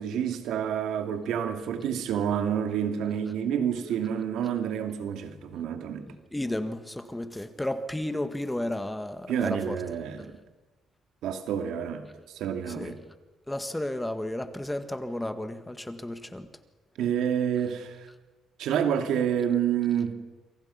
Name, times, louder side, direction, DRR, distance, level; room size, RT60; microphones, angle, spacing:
voice 1, 0.0-6.1 9.3-10.3 11.2-13.0 17.0-18.1 18.6-20.1, right 8 dB, 80° right, 2.5 m, -28 dB
voice 2, 6.1-9.8 12.8-12.9 13.5-16.5, left 1 dB, 10° left, 1.7 m, -33 dB
27.5 x 24.5 x 5.8 m
cardioid pair, 105°, 0 cm